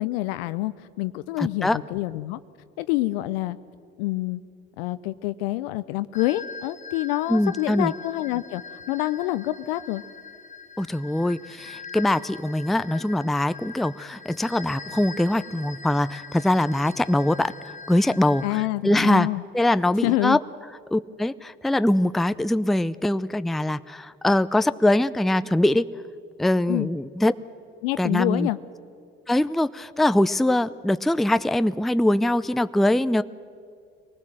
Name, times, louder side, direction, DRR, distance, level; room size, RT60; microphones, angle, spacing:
voice 1, 0.0-2.4 2.8-3.6 4.0-4.4 4.8-8.6 8.9-10.0 18.4-19.4 20.0-20.4 26.7-26.9 27.8-28.6, left 17 dB, 75° left, 14 dB, 0.6 m, -27 dB
voice 2, 1.4-1.8 7.3-7.9 10.8-17.5 17.9-19.3 19.5-20.4 20.9-25.9 26.4-27.3 28.0-28.5 29.3-33.2, left 1 dB, ahead, 14 dB, 0.5 m, -22 dB
sound 1, 6.1-18.5, left 5 dB, 25° left, 1.8 m, -42 dB
23.5 x 19.0 x 7.6 m, 2.3 s
hypercardioid pair, 55°, 30 cm